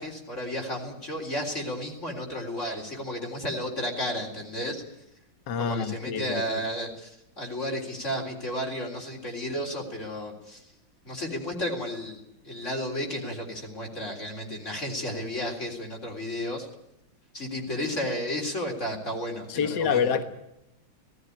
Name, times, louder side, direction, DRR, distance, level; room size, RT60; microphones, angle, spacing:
voice 1, 0.0-4.8 5.6-10.7 11.0-16.7 17.3-20.2, equal, 35° left, 1 dB, 4.0 m, -33 dB
voice 2, 5.5-6.4 19.5-20.2, left 6 dB, 60° left, 9 dB, 2.0 m, -26 dB
18.5 x 15.0 x 9.9 m, 0.87 s
omnidirectional pair, 2.2 m